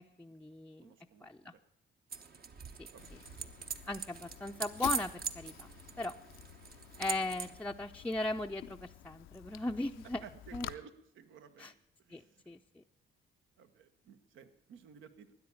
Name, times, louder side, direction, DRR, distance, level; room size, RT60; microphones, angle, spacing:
voice 1, 0.0-0.9 1.2-1.5 3.8-5.7 6.0-6.1 7.0-10.3 10.5-10.7 11.6-11.7 12.1-12.8, left 2 dB, 5° left, 2 dB, 0.5 m, -38 dB
voice 2, 0.8-1.6 2.9-3.2 10.2-11.7 12.0-12.4 13.6-15.3, right 8 dB, 80° right, 11 dB, 1.1 m, -55 dB
sound 1, 2.1-7.6, right 6 dB, 50° right, 1.1 m, -42 dB
Fire, 3.0-10.7, left 13 dB, 90° left, 0.6 m, -49 dB
13.0 x 9.7 x 8.5 m, 0.73 s
cardioid pair, 90°, 20 cm